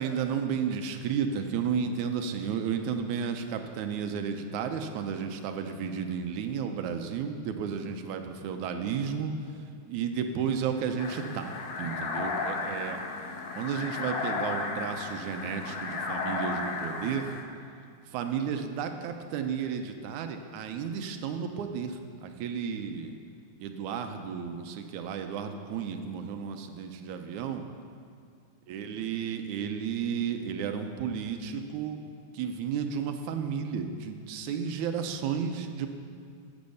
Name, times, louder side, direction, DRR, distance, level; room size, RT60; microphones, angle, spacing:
voice 1, 0.0-9.3 9.9-11.5 11.8-13.0 13.6-17.3 18.1-23.2 23.6-27.6 28.7-32.0 32.3-35.9, right 7 dB, 80° right, 6 dB, 2.1 m, -33 dB
sound 1, 11.0-17.4, left 3 dB, 70° left, 2.3 m, -34 dB
11.5 x 8.0 x 6.9 m, 2.2 s
omnidirectional pair, 3.5 m